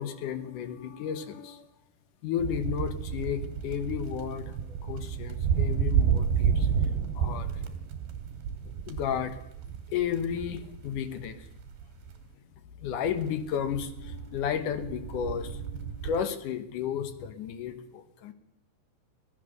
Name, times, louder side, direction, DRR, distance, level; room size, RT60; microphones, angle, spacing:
voice 1, 0.0-1.7 2.2-6.9 7.1-7.7 8.9-9.4 9.9-11.5 12.8-18.3, left 8 dB, 65° left, 10 dB, 2.4 m, -33 dB
sound 1, 2.4-12.2 13.1-16.2, right 7 dB, 80° right, 3.9 m, -31 dB
24.5 x 16.0 x 6.7 m, 0.82 s
omnidirectional pair, 4.7 m